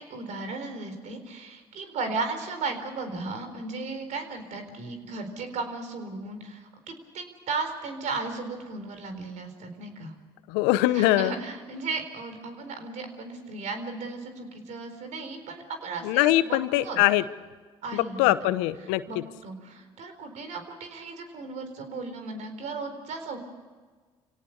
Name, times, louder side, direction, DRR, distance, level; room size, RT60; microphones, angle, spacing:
voice 1, 0.0-10.1 10.9-17.0 17.8-18.5 19.1-23.4, right 3 dB, 65° right, 7 dB, 4.2 m, -35 dB
voice 2, 10.5-11.3 16.0-17.2 17.9-19.2, left 16 dB, 80° left, 14 dB, 0.9 m, -23 dB
27.0 x 18.0 x 6.6 m, 1.4 s
hypercardioid pair, 55°, 13 cm